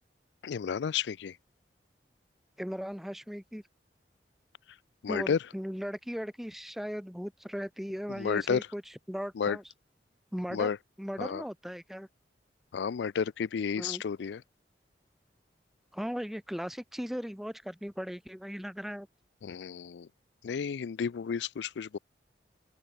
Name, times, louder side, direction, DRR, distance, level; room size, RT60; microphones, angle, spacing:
voice 1, 0.4-1.4 5.0-5.4 8.2-8.6 9.4-9.6 10.5-10.8 11.2-11.4 12.7-14.4 19.4-20.1 20.4-22.0, left 6 dB, 80° left, 0.4 m, -31 dB
voice 2, 2.6-3.6 5.1-8.8 9.1-9.6 10.3-10.7 11.0-12.1 13.8-14.0 15.9-19.1, equal, ahead, 0.7 m, -37 dB
open air
head